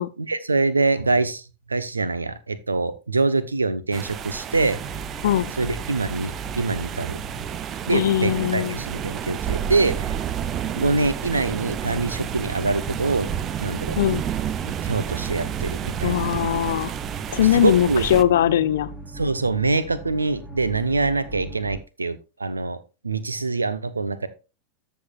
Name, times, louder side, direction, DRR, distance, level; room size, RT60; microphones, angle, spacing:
voice 1, 0.2-1.4 1.7-4.8 5.6-7.2 7.9-10.1 10.7-13.3 13.6-14.0 14.6-16.3 17.5-18.0 19.1-22.8 23.0-24.3, right 3 dB, 80° right, 0.8 m, -24 dB
sound 1, 3.9-18.2, right 9 dB, 30° right, 0.5 m, -31 dB
sound 2, 4.5-21.8, right 3 dB, 10° right, 2.1 m, -39 dB
voice 2, 7.9-8.8 14.0-14.2 16.0-16.9 17.3-18.9, left 11 dB, 60° left, 0.6 m, -20 dB
14.0 x 5.7 x 2.4 m
figure-of-eight pair, 90°, 0 cm